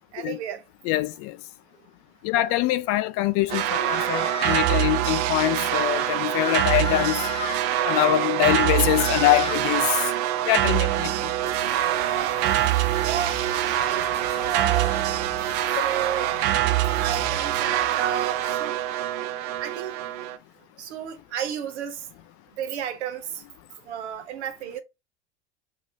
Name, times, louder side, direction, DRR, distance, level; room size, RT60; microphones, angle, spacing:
voice 1, 0.1-0.6 2.3-2.5 13.0-15.0 15.8-16.3 16.6-18.8 19.6-20.0 20.8-22.1 22.6-23.4 23.9-24.8, right 9 dB, 70° right, 0.9 m, -32 dB
voice 2, 0.8-1.4 2.2-7.3 7.8-10.1 10.4-11.3, left 16 dB, 40° left, 0.4 m, -24 dB
sound 1, 3.5-4.7 5.9-7.6 8.5-9.6, left 3 dB, 15° left, 0.9 m, -33 dB
sound 2, 3.5-20.4, right 13 dB, 45° right, 0.5 m, -25 dB
sound 3, 11.4-19.0, left 4 dB, 80° left, 1.1 m, -43 dB
3.2 x 2.7 x 2.6 m
hypercardioid pair, 80°, 35 cm